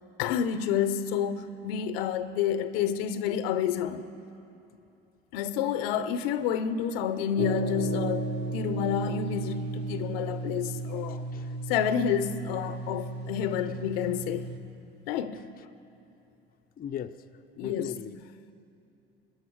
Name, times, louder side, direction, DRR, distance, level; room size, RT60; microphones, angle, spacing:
voice 1, 0.2-4.0 5.3-11.3 11.7-14.5 15.1-15.5 17.6-17.9, left 8 dB, 75° left, 0.7 m, -29 dB
sound 1, 7.4-14.6, right 3 dB, 85° right, 1.2 m, -34 dB
voice 2, 11.1-11.6 15.3-15.5 16.8-17.3 17.6-18.2, left 9 dB, 30° left, 0.6 m, -38 dB
22.5 x 10.5 x 4.6 m
hypercardioid pair, 65°, 30 cm